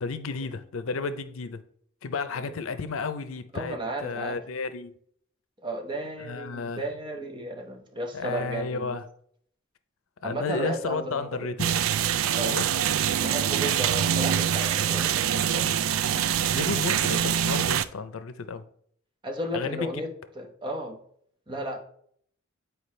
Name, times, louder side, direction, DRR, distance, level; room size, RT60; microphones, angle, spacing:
voice 1, 0.0-1.6 2.0-3.8 4.0-4.9 6.2-6.8 8.1-9.0 10.2-11.7 12.5-12.7 16.5-18.6 19.5-20.0, left 4 dB, 90° left, 0.5 m, -32 dB
voice 2, 3.5-4.4 5.6-9.0 10.2-11.5 12.3-12.6 13.2-15.6 19.2-20.1 20.3-21.0 21.5-21.8, right 1 dB, 25° right, 0.9 m, -34 dB
sound 1, 11.6-17.9, right 9 dB, 85° right, 0.3 m, -25 dB
8.4 x 4.6 x 3.2 m
head